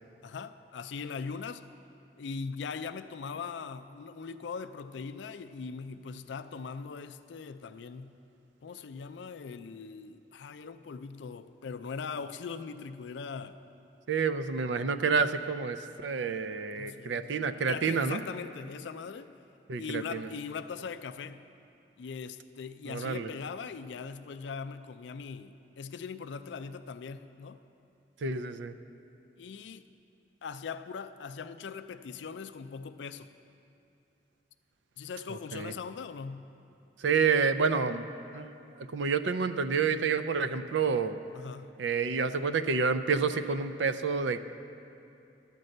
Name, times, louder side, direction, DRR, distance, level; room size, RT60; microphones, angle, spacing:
voice 1, 0.2-1.6 2.2-8.2 8.6-13.6 16.8-17.3 17.7-19.3 19.8-21.4 22.0-27.6 29.4-29.8 30.4-33.3 35.0-36.5 41.3-41.7, left 5 dB, 80° left, 12 dB, 0.4 m, -40 dB
voice 2, 14.1-18.2 19.7-20.3 22.9-23.3 28.2-28.8 35.3-35.7 37.0-38.5 38.8-41.2 41.8-44.4, right 5 dB, 85° right, 11 dB, 0.5 m, -29 dB
12.0 x 5.3 x 7.7 m, 2.7 s
head